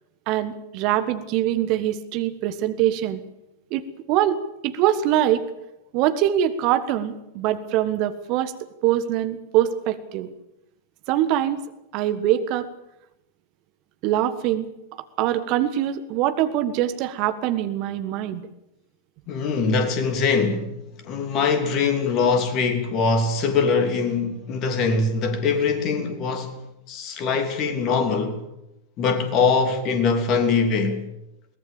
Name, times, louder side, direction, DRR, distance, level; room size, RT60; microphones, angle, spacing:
voice 1, 0.3-3.2 3.7-3.8 4.1-4.4 4.6-5.4 5.9-8.5 8.8-10.3 11.1-11.6 11.9-12.7 14.0-14.7 15.2-18.4, right 12 dB, 40° right, 1.5 m, -23 dB
voice 2, 19.3-20.7 21.1-26.6 26.9-28.4 29.0-31.0, left 4 dB, 35° left, 3.1 m, -22 dB
22.0 x 19.0 x 7.3 m
figure-of-eight pair, 90°, 0 cm